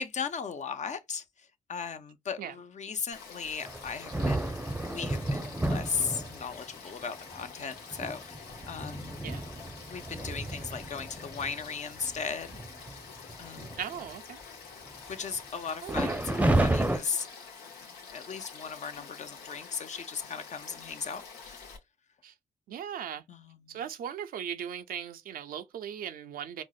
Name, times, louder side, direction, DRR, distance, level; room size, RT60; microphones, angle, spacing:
voice 1, 0.0-4.5 4.9-9.2 9.9-12.6 12.9-13.0 13.4-13.8 15.1-17.3 18.1-21.7 23.3-23.8, left 6 dB, 50° left, 0.6 m, -37 dB
Frog / Stream, 3.1-21.8, left 5 dB, 90° left, 0.7 m, -47 dB
sound 1, 3.7-6.6 7.3-7.4 7.9-11.5 12.0-12.2 12.5-12.9 13.3-14.1 15.9-17.0, right 1 dB, 10° right, 0.6 m, -31 dB
voice 2, 13.8-14.4 15.8-16.2 22.2-22.3 22.7-23.2 23.7-26.6, right 9 dB, 70° right, 0.4 m, -38 dB
4.5 x 2.0 x 2.4 m
supercardioid pair, 45°, 15 cm